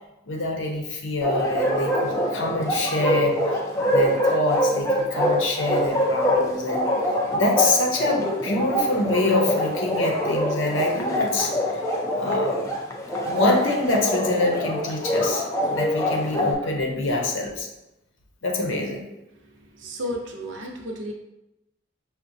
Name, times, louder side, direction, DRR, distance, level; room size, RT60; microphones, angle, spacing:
voice 1, 0.3-6.9 7.3-11.8 12.1-12.6 13.3-17.7 18.4-19.0, left 2 dB, 80° left, 0 dB, 0.7 m, -25 dB
Bark, 1.2-16.5, equal, 15° left, 0.5 m, -24 dB
voice 2, 19.7-21.1, equal, 70° right, 2 dB, 0.6 m, -32 dB
5.7 x 2.2 x 2.6 m, 0.91 s
head